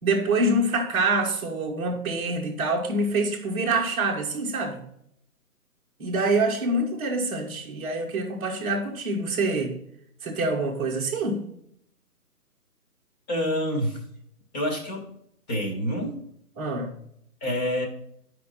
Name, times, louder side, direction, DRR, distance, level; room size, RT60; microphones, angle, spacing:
voice 1, 0.0-4.8 6.0-9.8 10.2-11.4 16.6-16.9, right 2 dB, 15° right, 1.2 m, -26 dB
voice 2, 13.3-14.0 14.5-15.1 15.5-16.1 17.4-17.9, equal, 25° left, 2.1 m, -27 dB
11.0 x 5.2 x 4.3 m
figure-of-eight pair, 145°, 47 cm